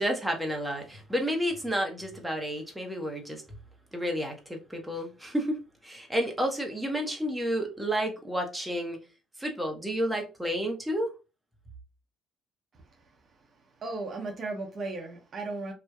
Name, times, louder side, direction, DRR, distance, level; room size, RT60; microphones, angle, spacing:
voice 1, 0.0-3.4 3.9-9.0 9.4-11.1, equal, 10° right, 0.8 m, -31 dB
voice 2, 13.8-15.7, right 3 dB, 50° right, 0.7 m, -35 dB
2.6 x 2.1 x 2.3 m
supercardioid pair, 60°, 0 cm